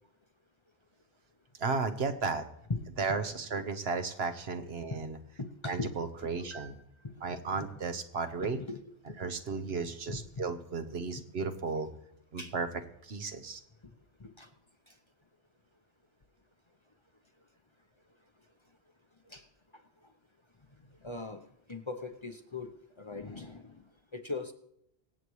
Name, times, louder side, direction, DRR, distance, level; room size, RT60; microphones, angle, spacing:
voice 1, 1.6-2.4 3.0-5.2 5.6-6.7 7.2-8.6 9.2-11.9 12.3-12.7 13.0-13.6, right 4 dB, 75° right, 8 dB, 1.2 m, -34 dB
voice 2, 5.4-5.9 6.5-6.7 7.0-7.1 7.5-7.7 8.4-8.8 9.1-9.3 10.1-10.4 12.4-12.5 14.2-14.5 19.3-19.4 21.0-21.4 21.7-22.7 23.0-23.8 24.1-24.5, left 3 dB, 30° left, 7 dB, 0.7 m, -39 dB
24.0 x 8.3 x 3.1 m, 0.79 s
omnidirectional pair, 1.1 m